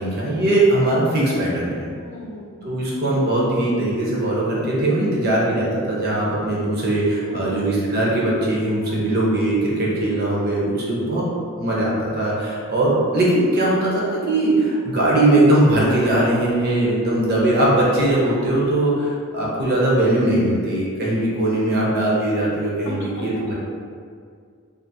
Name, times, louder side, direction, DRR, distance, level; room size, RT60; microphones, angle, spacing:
voice 1, 0.0-1.9 2.6-11.3 11.6-23.5, right 1 dB, 50° right, -5 dB, 0.6 m, -20 dB
voice 2, 1.9-3.0 7.2-7.6 8.8-9.1 13.0-13.2 19.3-19.6, left 1 dB, 65° left, -5 dB, 0.6 m, -40 dB
2.5 x 2.5 x 2.6 m, 2.2 s
head